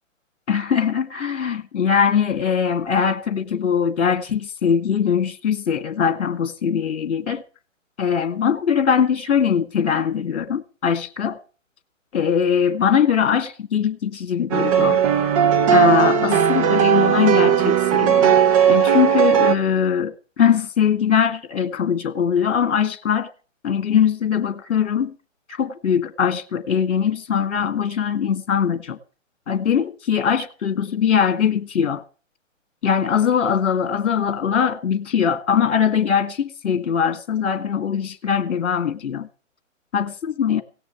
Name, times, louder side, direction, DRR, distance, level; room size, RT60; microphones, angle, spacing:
voice 1, 0.5-7.4 8.0-11.4 12.1-15.0 15.7-18.3 18.7-23.3 23.6-25.1 25.6-29.0 29.5-32.0 32.8-39.3 39.9-40.6, left 7 dB, 60° left, 2.0 m, -21 dB
sound 1, 14.5-19.6, right 8 dB, 25° right, 1.1 m, -17 dB
17.5 x 6.9 x 8.3 m
hypercardioid pair, 145°, 39 cm